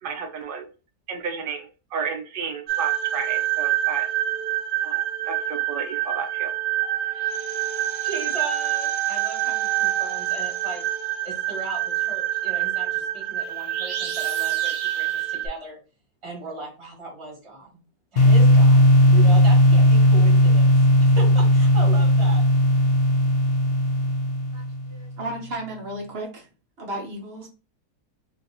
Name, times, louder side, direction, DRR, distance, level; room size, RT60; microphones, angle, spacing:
voice 1, 0.0-0.7 1.1-4.1 4.8-6.5, right 6 dB, 70° right, 4 dB, 0.5 m, -32 dB
sound 1, 2.7-15.5, right 13 dB, 90° right, 1.2 m, -26 dB
voice 2, 8.0-10.8 11.2-15.8 16.2-17.7 18.1-18.8 19.1-22.4, right 3 dB, 20° right, -3 dB, 1.3 m, -37 dB
sound 2, 18.2-25.0, equal, 85° left, 0.5 m, -16 dB
voice 3, 24.5-26.5 26.8-27.5, right 1 dB, 45° right, 0 dB, 1.0 m, -34 dB
3.0 x 2.7 x 2.8 m, 0.32 s
omnidirectional pair, 1.8 m